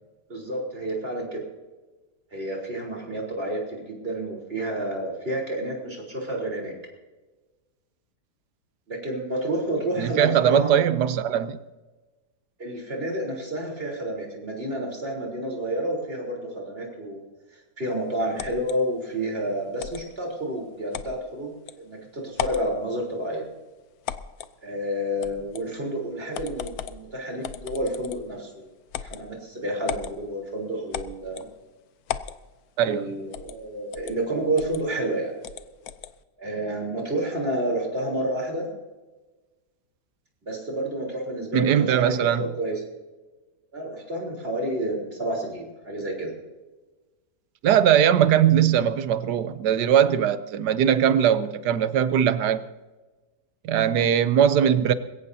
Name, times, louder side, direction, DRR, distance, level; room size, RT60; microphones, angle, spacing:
voice 1, 0.3-1.4 2.3-6.8 8.9-10.8 12.6-17.2 17.8-23.4 24.6-28.7 29.0-31.5 32.8-35.3 36.4-38.7 40.5-42.8 43.7-46.3, right 1 dB, 35° right, -1 dB, 3.9 m, -30 dB
voice 2, 10.0-11.6 32.8-33.0 41.5-42.5 47.6-52.6 53.6-54.9, right 9 dB, 80° right, 13 dB, 1.3 m, -20 dB
sound 1, 18.4-18.8 19.8-20.0 20.9-21.1 21.7-21.8 22.3-22.7 24.1-24.5 25.2-25.7 26.3-27.0 27.4-28.3 28.9-29.2 29.9-30.1 30.9-31.5 32.1-32.4 33.3-33.6 33.9-34.1 34.6-34.8 35.4-36.1, left 9 dB, 70° left, 1.1 m, -35 dB
21.5 x 17.0 x 2.7 m, 1.2 s
omnidirectional pair, 1.8 m